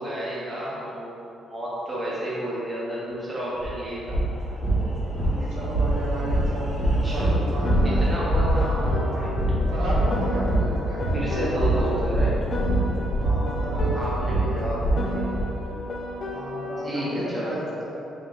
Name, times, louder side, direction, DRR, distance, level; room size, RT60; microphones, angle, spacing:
voice 1, 0.0-4.2 5.4-5.5 7.0-9.6 11.1-12.4 13.9-15.8 16.8-17.5, right 1 dB, 20° right, -7 dB, 1.3 m, -31 dB
sound 1, 3.6-3.7 4.0-15.4, right 1 dB, 15° left, 1.3 m, -24 dB
voice 2, 5.1-8.1 9.6-12.0 13.1-14.4 16.2-18.0, right 1 dB, 90° right, -8 dB, 1.3 m, -34 dB
Piano, 7.6-12.1 12.5-17.1, left 1 dB, 50° left, 0.6 m, -33 dB
4.7 x 3.5 x 2.9 m, 2.8 s
cardioid pair, 90°, 0 cm